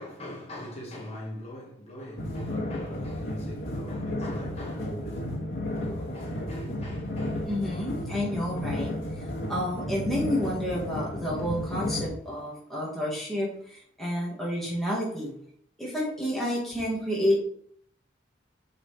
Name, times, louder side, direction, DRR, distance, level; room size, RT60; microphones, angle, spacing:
voice 1, 0.0-7.7, left 1 dB, 30° left, 1.4 m, -41 dB
sound 1, 2.2-12.1, left 1 dB, 75° left, 1.5 m, -33 dB
voice 2, 7.5-8.9 9.5-15.3 15.8-17.4, left 1 dB, ahead, 1.6 m, -30 dB
6.6 x 4.9 x 3.3 m
head